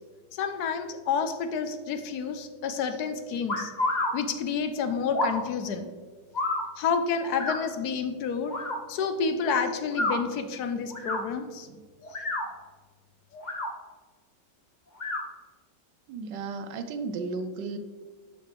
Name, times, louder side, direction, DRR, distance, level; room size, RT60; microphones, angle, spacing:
voice 1, 0.3-3.7 4.1-5.9 6.8-8.6 8.9-11.7, left 6 dB, 70° left, 9 dB, 1.3 m, -29 dB
sound 1, 3.5-4.1 5.1-5.4 6.3-6.6 7.4-7.6 8.5-8.8 9.9-10.2 10.9-11.2 12.0-12.5 13.3-13.7 15.0-15.2, left 1 dB, 30° left, 1.2 m, -29 dB
voice 2, 16.1-17.8, right 4 dB, 80° right, 9 dB, 1.3 m, -34 dB
11.5 x 7.9 x 3.3 m, 1.5 s
omnidirectional pair, 1.9 m